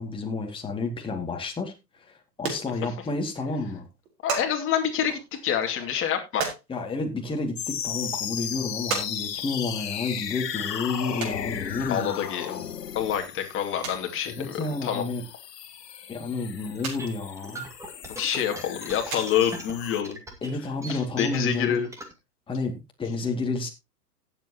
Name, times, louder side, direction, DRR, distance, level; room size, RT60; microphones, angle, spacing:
voice 1, 0.0-3.9 6.7-12.2 14.3-15.2 16.1-17.7 20.4-21.9 22.5-23.7, left 3 dB, 10° left, 2 dB, 2.3 m, -31 dB
sound 1, 2.0-2.1 2.3-3.3 3.5-3.6 3.8-4.5 5.0-6.6 7.4-7.5 8.1-8.2 8.9-9.1 9.4-9.5 11.2-11.4 12.5-12.7 13.1-13.2 13.4-13.5 13.8-14.1 15.5-15.6 16.0-16.1 16.8-17.0 17.3-17.4 18.6-18.8 19.1-19.5 20.4-20.5 20.7-20.8 21.0-21.1, right 5 dB, 55° right, 4.7 m, -33 dB
voice 2, 4.2-6.4 11.8-12.6 12.9-15.0 18.2-20.2 20.9-21.9, left 9 dB, 25° left, 4 dB, 2.6 m, -27 dB
sound 2, 7.6-20.0, left 9 dB, 85° left, 0.8 m, -36 dB
sound 3, 16.8-22.1, right 1 dB, 5° right, 2.2 m, -40 dB
17.5 x 7.9 x 2.9 m, 0.25 s
hypercardioid pair, 110°, 47 cm